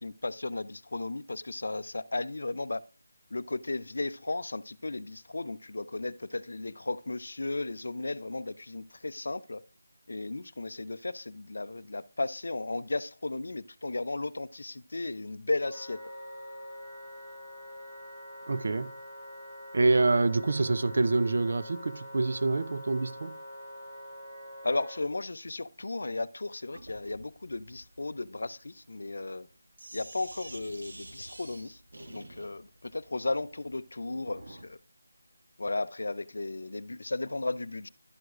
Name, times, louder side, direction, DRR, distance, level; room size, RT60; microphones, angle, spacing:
voice 1, 0.0-2.8 3.3-9.6 10.1-16.0 24.6-29.5 29.9-31.8 32.1-34.8 35.6-37.9, left 2 dB, 60° left, 0.5 m, -35 dB
Wind instrument woodwind instrument, 15.7-25.0, equal, 15° right, 2.4 m, -45 dB
voice 2, 18.5-18.9 19.7-23.3, right 3 dB, 40° right, 0.5 m, -26 dB
Sink (filling or washing), 26.7-34.7, right 1 dB, 75° right, 1.8 m, -49 dB
11.5 x 7.8 x 2.5 m
figure-of-eight pair, 180°, 0 cm